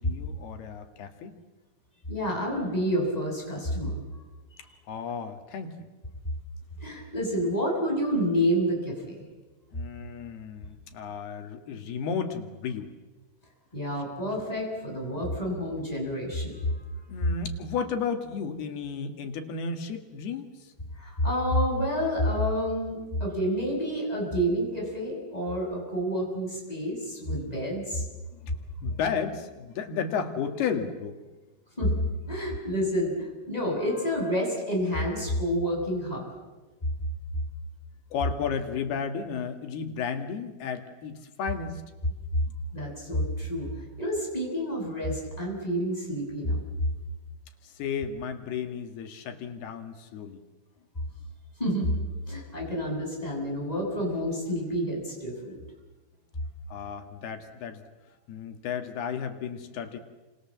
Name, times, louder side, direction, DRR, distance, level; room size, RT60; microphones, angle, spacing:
voice 1, 0.0-1.4 4.9-5.9 9.7-12.9 17.1-20.7 28.3-28.5 28.8-31.2 38.1-41.8 47.6-50.4 56.7-57.8 58.3-60.0, left 6 dB, 85° left, 6 dB, 4.0 m, -33 dB
voice 2, 2.1-4.2 6.8-9.3 13.7-16.6 21.0-28.0 31.8-32.0 32.3-36.2 42.7-43.7 44.0-46.6 51.6-51.9 52.2-55.6, equal, 10° left, -1 dB, 7.2 m, -29 dB
29.5 x 26.5 x 7.5 m, 1.2 s
omnidirectional pair, 4.4 m